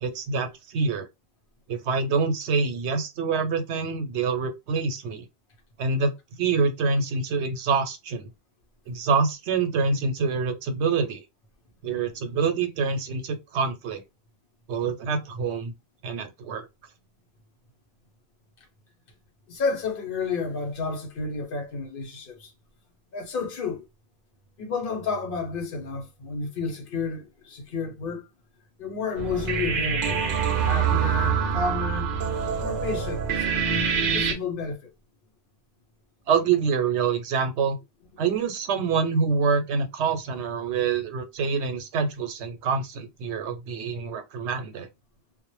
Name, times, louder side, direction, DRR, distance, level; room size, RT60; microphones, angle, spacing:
voice 1, 0.0-1.1 1.7-5.2 5.8-6.1 6.4-8.3 8.9-11.2 11.8-14.0 14.7-15.7 16.0-16.7 36.3-37.8 38.2-44.9, right 5 dB, 90° right, 0.9 m, -26 dB
voice 2, 19.5-22.5 23.1-23.9 24.6-28.3 28.8-32.1 32.6-33.6 33.9-34.9, left 4 dB, 60° left, 0.8 m, -31 dB
sound 1, 29.2-34.3, right 6 dB, 60° right, 0.7 m, -25 dB
2.1 x 2.0 x 2.9 m
omnidirectional pair, 1.1 m